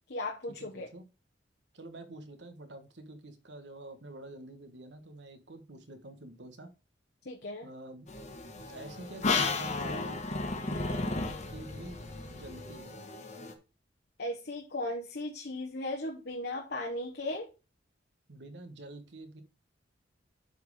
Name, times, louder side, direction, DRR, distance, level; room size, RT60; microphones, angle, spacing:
voice 1, 0.1-0.9 7.2-7.7 14.2-17.5, left 1 dB, 60° left, 2 dB, 1.1 m, -36 dB
voice 2, 0.7-1.0 1.7-6.7 7.6-8.1 8.7-10.2 10.5-13.0 18.3-19.4, right 1 dB, 70° right, 8 dB, 1.4 m, -47 dB
sound 1, 8.1-13.5, left 3 dB, 40° left, 1.3 m, -34 dB
7.9 x 4.4 x 4.9 m, 0.30 s
head